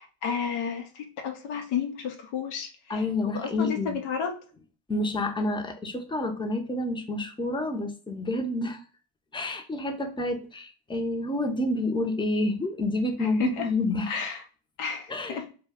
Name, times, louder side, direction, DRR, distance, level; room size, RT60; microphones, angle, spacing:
voice 1, 0.0-3.0 3.3-4.3 13.2-13.7 14.1-14.4 14.8-15.4, left 7 dB, 90° left, 4 dB, 0.6 m, -32 dB
voice 2, 2.9-4.0 4.9-8.8 9.3-14.2 15.1-15.5, left 2 dB, 10° left, 5 dB, 0.5 m, -29 dB
2.2 x 2.1 x 3.4 m, 0.39 s
supercardioid pair, 60°, 49 cm